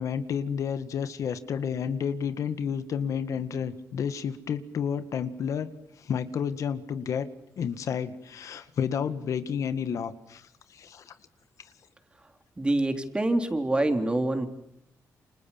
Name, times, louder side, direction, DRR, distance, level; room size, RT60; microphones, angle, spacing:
voice 1, 0.0-5.7 6.0-7.3 7.6-11.1, left 7 dB, 70° left, 11 dB, 1.8 m, -31 dB
voice 2, 12.6-14.5, right 2 dB, 15° right, 7 dB, 3.6 m, -25 dB
29.0 x 27.0 x 7.3 m, 0.78 s
cardioid pair, 100°, 6 cm